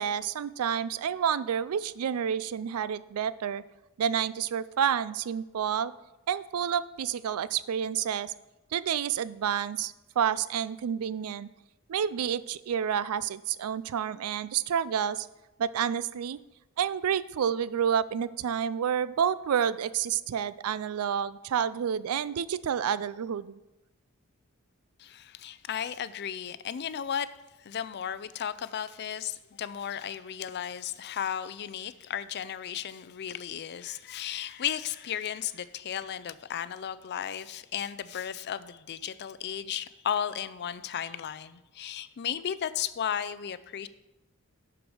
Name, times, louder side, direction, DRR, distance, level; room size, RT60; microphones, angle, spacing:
voice 1, 0.0-3.6 4.0-5.9 6.3-8.3 8.7-11.5 11.9-15.3 15.6-16.4 16.8-23.6, right 8 dB, 85° right, 17 dB, 0.4 m, -29 dB
voice 2, 25.0-27.3 27.6-43.9, left 9 dB, 50° left, 15 dB, 0.4 m, -34 dB
11.5 x 4.8 x 4.9 m, 1.0 s
head